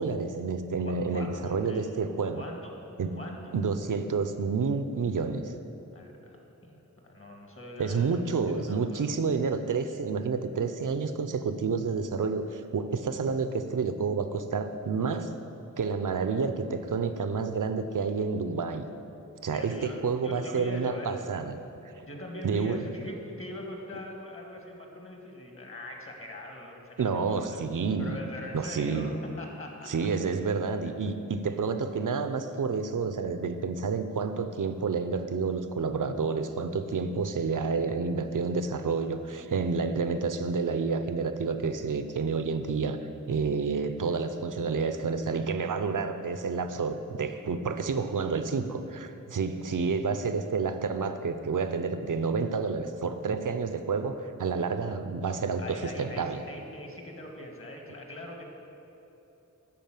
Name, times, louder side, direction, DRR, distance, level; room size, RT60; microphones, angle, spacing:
voice 1, 0.0-2.4 3.0-3.2 3.5-5.5 7.8-15.3 15.8-18.9 19.4-21.6 22.0-22.1 22.4-22.8 27.0-28.2 28.5-29.2 29.9-43.0 43.3-56.4, right 5 dB, 70° right, 9 dB, 0.6 m, -29 dB
voice 2, 0.8-1.8 2.3-2.7 3.1-3.5 5.9-9.1 19.5-21.2 22.1-27.5 28.0-29.9 43.6-43.7 44.1-44.2 55.6-58.4, left 1 dB, 40° left, 1 dB, 1.7 m, -42 dB
11.0 x 4.2 x 7.5 m, 3.0 s
wide cardioid pair, 50°, 33 cm